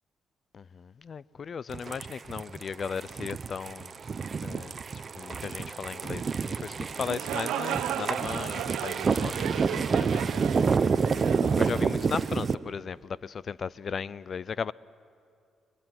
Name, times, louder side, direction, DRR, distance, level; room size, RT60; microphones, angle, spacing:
voice 1, 0.5-4.0 4.4-10.7 11.2-14.7, left 6 dB, 50° left, 0.6 m, -37 dB
sound 1, 1.7-12.5, right 5 dB, 40° right, 0.8 m, -29 dB
sound 2, 6.9-12.6, right 11 dB, 90° right, 0.9 m, -35 dB
26.0 x 23.0 x 9.6 m
cardioid pair, 85°, 0 cm